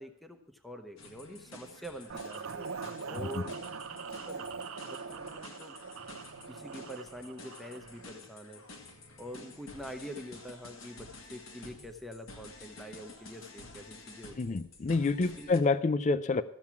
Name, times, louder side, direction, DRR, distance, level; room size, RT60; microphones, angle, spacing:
voice 1, 0.0-2.7 3.0-3.6 4.2-4.4 4.8-5.8 6.5-8.6 9.2-14.6 15.4-15.6, equal, ahead, 5 dB, 0.8 m, -45 dB
sound 1, 1.0-15.6, left 3 dB, 70° left, 1.6 m, -51 dB
sound 2, 2.1-8.0, right 5 dB, 85° right, 0.7 m, -42 dB
voice 2, 14.4-16.4, left 3 dB, 35° left, 14 dB, 0.4 m, -28 dB
13.5 x 7.2 x 5.9 m, 0.67 s
head